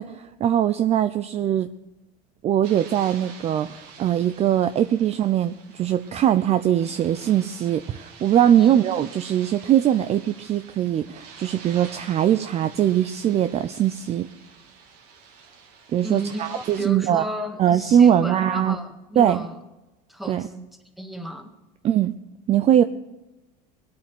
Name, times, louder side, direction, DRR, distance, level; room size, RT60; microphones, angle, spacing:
voice 1, 0.0-1.7 2.4-14.3 15.9-17.2 17.6-18.8 19.2-19.4 20.3-20.5 21.8-22.1 22.5-22.8, right 10 dB, 30° right, 0.5 m, -21 dB
sound 1, 2.6-16.8, right 5 dB, 80° right, 3.4 m, -46 dB
voice 2, 16.0-19.6 20.1-20.7 21.0-21.5, right 1 dB, ahead, 1.9 m, -33 dB
21.5 x 8.6 x 6.0 m
supercardioid pair, 125°, 20 cm